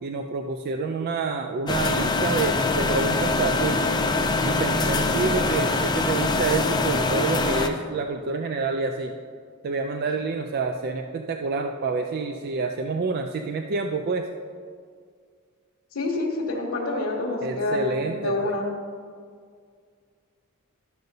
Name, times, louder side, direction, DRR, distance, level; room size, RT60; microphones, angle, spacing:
voice 1, 0.0-3.9 4.4-9.1 9.6-14.2 17.4-18.6, right 4 dB, 45° right, 4 dB, 0.3 m, -28 dB
sound 1, 1.7-7.7, left 3 dB, 20° left, 0.4 m, -23 dB
voice 2, 4.9-5.3 15.9-18.7, left 2 dB, 75° left, -6 dB, 1.1 m, -28 dB
12.0 x 6.6 x 2.7 m, 2.1 s
head